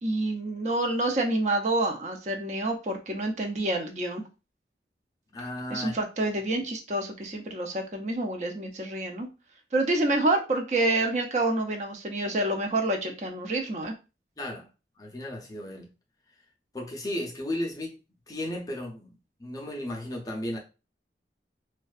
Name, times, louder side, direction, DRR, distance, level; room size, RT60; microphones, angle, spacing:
voice 1, 0.0-4.2 5.7-9.3 9.7-13.9, right 2 dB, 40° right, 0.4 m, -28 dB
voice 2, 5.3-5.9 14.4-14.7 15.0-15.9 16.7-18.0 18.3-19.1 19.4-20.6, left 1 dB, 20° left, 0.5 m, -34 dB
2.5 x 2.2 x 2.3 m
head